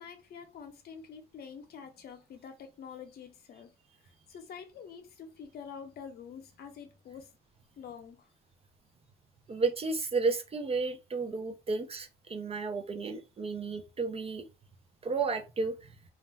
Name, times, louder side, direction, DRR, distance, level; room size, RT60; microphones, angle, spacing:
voice 1, 0.0-3.7 4.0-7.3 7.8-8.3, left 6 dB, 55° left, 0.7 m, -47 dB
voice 2, 9.5-14.4 15.0-15.8, right 4 dB, 30° right, 0.5 m, -32 dB
2.4 x 2.1 x 3.3 m
supercardioid pair, 80°, 19 cm